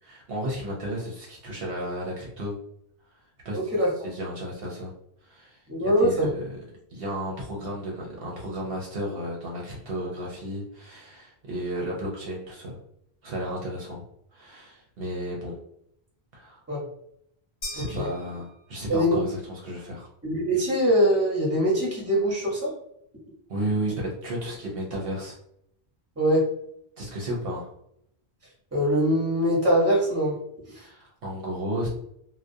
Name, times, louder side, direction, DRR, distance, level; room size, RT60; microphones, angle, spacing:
voice 1, 0.0-2.5 3.4-3.7 4.0-4.9 5.2-6.4 6.9-12.8 13.2-14.0 14.3-15.6 16.3-16.6 17.7-20.1 23.5-25.4 27.0-27.7 30.7-31.9, right 1 dB, 65° right, -3 dB, 0.8 m, -33 dB
voice 2, 3.5-3.9 5.7-6.3 16.7-16.8 17.8-18.1 18.9-19.2 20.2-22.7 26.2-26.5 28.7-30.3, equal, 15° right, -5 dB, 0.8 m, -23 dB
sound 1, 17.6-19.1, left 1 dB, 30° left, 0.7 m, -40 dB
2.3 x 2.1 x 2.6 m, 0.73 s
omnidirectional pair, 1.1 m